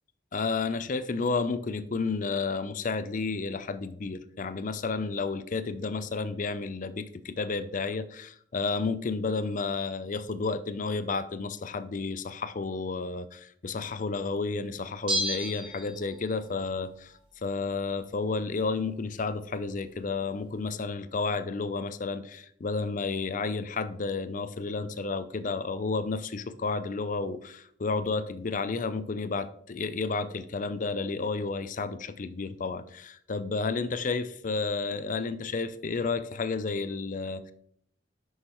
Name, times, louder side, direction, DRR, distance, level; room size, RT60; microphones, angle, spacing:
voice 1, 0.3-17.1 17.4-37.5, left 4 dB, 45° left, 0.5 m, -31 dB
Bell, 15.1-16.5 16.8-16.9, equal, 25° right, 1.4 m, -32 dB
9.6 x 6.4 x 3.0 m
head